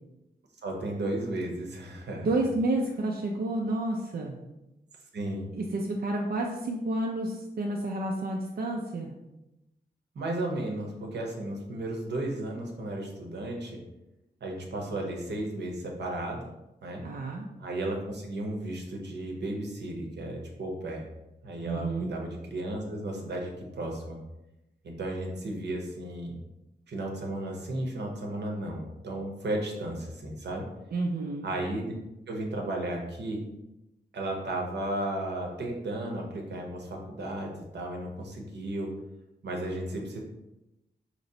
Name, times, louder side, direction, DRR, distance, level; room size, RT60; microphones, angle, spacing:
voice 1, 0.6-2.3 5.1-5.5 10.1-13.8 14.4-16.5 16.8-17.0 17.6-21.0 21.4-24.2 24.8-26.4 26.9-30.6 31.4-31.9 32.3-33.4 34.1-38.9 39.4-40.2, right 1 dB, 80° right, 1 dB, 0.8 m, -34 dB
voice 2, 2.2-4.4 5.5-9.1 17.0-17.5 21.6-22.1 30.9-31.5, right 2 dB, 60° right, 0 dB, 0.4 m, -30 dB
4.2 x 2.9 x 2.7 m, 0.94 s
wide cardioid pair, 110°, 17 cm